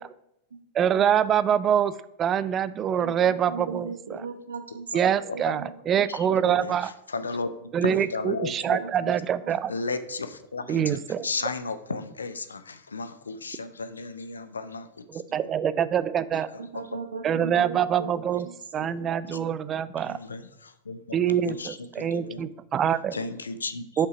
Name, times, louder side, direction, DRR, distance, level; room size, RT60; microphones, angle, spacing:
voice 1, 0.7-1.9 2.2-3.9 4.9-6.9 7.7-9.7 10.7-11.3 15.1-16.5 17.2-18.5 18.7-20.2 21.1-23.2 24.0-24.1, right 9 dB, 30° right, 16 dB, 0.4 m, -25 dB
voice 2, 3.0-5.7 8.8-9.5 11.2-11.6 16.6-18.1 18.4-19.4, right 4 dB, 70° right, 7 dB, 0.9 m, -38 dB
voice 3, 7.1-8.8 9.1-9.2 9.7-10.8 11.2-14.9 15.1-15.2 16.7-16.8 19.3-19.4 20.1-22.4 23.1-23.9, left 3 dB, 75° left, 12 dB, 0.6 m, -34 dB
6.8 x 5.6 x 5.0 m, 0.85 s
figure-of-eight pair, 90°, 0 cm